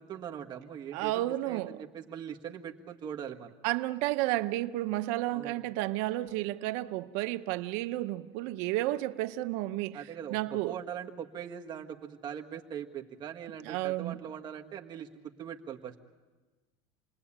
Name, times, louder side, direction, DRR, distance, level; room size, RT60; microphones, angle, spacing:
voice 1, 0.0-3.5 5.3-5.6 9.9-15.1 15.4-15.9, right 8 dB, 35° right, 1.8 m, -41 dB
voice 2, 0.9-1.8 3.6-10.8 13.6-14.2, right 16 dB, 75° right, 1.0 m, -32 dB
28.5 x 20.5 x 8.8 m
cardioid pair, 145°, 13 cm